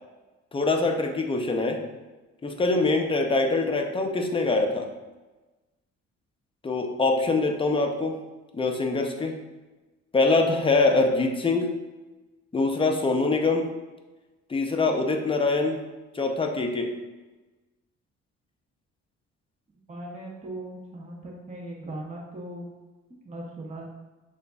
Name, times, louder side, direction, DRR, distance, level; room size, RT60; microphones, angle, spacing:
voice 1, 0.5-1.8 2.4-4.9 6.6-8.2 8.5-9.4 10.1-11.7 12.5-13.7 14.5-15.8 16.1-16.9, left 3 dB, 20° left, 3 dB, 0.5 m, -24 dB
voice 2, 19.9-22.7 23.2-23.9, right 1 dB, 25° right, -3 dB, 0.8 m, -38 dB
6.6 x 2.5 x 2.3 m, 1.2 s
cardioid pair, 90°, 30 cm